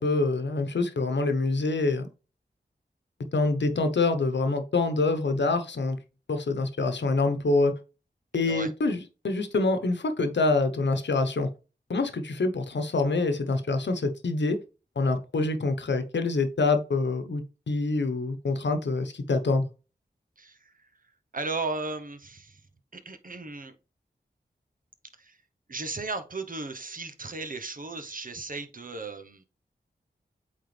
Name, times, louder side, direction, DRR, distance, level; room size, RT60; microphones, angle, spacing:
voice 1, 0.0-2.1 3.3-6.0 6.3-7.7 8.3-11.5 11.9-14.6 15.0-19.7, left 3 dB, 80° left, 8 dB, 1.1 m, -26 dB
voice 2, 20.4-20.9 21.3-22.6 22.9-23.7 25.2-25.4 25.7-29.4, right 3 dB, 50° right, 8 dB, 1.1 m, -36 dB
8.3 x 3.9 x 3.4 m, 0.32 s
wide cardioid pair, 60°, 18 cm